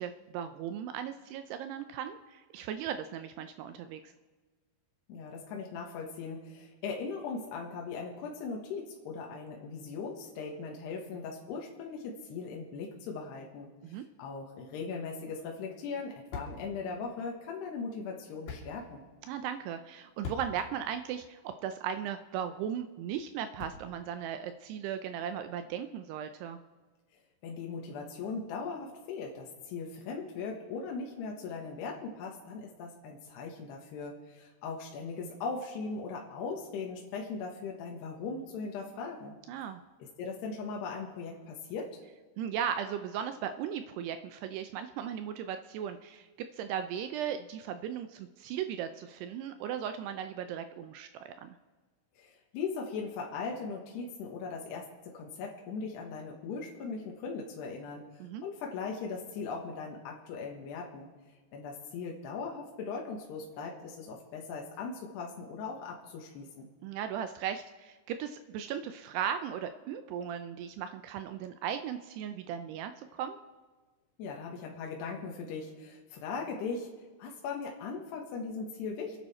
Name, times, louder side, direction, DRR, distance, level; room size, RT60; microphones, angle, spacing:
voice 1, 0.0-4.1 13.8-14.0 19.3-26.6 39.5-39.8 42.4-51.6 58.2-58.4 66.8-73.4, right 9 dB, 80° right, 9 dB, 2.4 m, -37 dB
voice 2, 5.1-19.0 27.4-39.4 40.2-42.0 52.2-61.1 61.5-66.7 74.2-76.9 77.2-79.2, left 4 dB, 70° left, 0 dB, 3.3 m, -39 dB
sound 1, 15.1-24.1, left 4 dB, 50° left, 4.1 m, -49 dB
28.5 x 9.9 x 4.3 m, 1.4 s
omnidirectional pair, 5.3 m